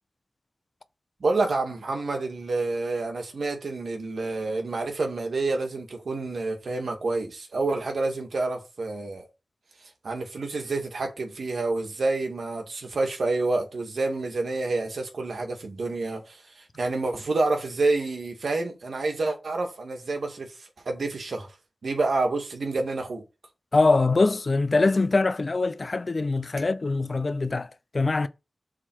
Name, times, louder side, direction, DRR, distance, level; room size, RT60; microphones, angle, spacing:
voice 1, 1.2-9.3 10.0-21.5 21.8-23.2, right 3 dB, 80° right, 2.3 m, -28 dB
voice 2, 23.7-27.7 27.9-28.3, left 3 dB, 45° left, 0.7 m, -23 dB
7.5 x 4.1 x 6.5 m
wide cardioid pair, 95°, 0 cm